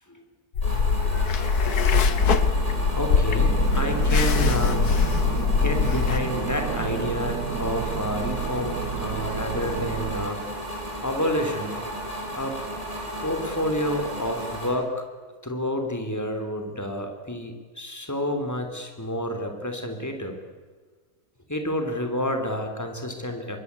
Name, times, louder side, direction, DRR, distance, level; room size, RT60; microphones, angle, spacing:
sound 1, 0.6-6.2, left 5 dB, 75° left, 1.8 m, -22 dB
sound 2, 0.6-14.7, equal, 20° right, 6.8 m, -34 dB
sound 3, 1.9-10.3, right 7 dB, 85° right, 1.7 m, -31 dB
voice 1, 2.9-4.9 5.5-10.4 11.0-11.8 12.4-12.6 13.2-15.0 15.4-20.4 21.5-23.6, left 1 dB, 10° left, 5 dB, 3.3 m, -29 dB
26.5 x 22.0 x 8.3 m, 1.5 s
omnidirectional pair, 1.7 m